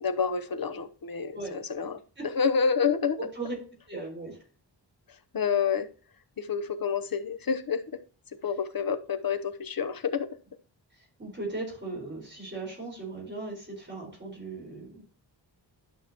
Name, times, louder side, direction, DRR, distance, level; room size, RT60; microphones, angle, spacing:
voice 1, 0.0-2.0 2.3-3.2 5.3-5.9 6.4-7.8 8.4-10.3, left 6 dB, 50° left, 9 dB, 0.9 m, -28 dB
voice 2, 3.2-3.5 3.9-4.4 10.9-15.0, right 3 dB, 25° right, -2 dB, 4.4 m, -38 dB
11.5 x 6.0 x 2.9 m, 0.38 s
wide cardioid pair, 110°, 44 cm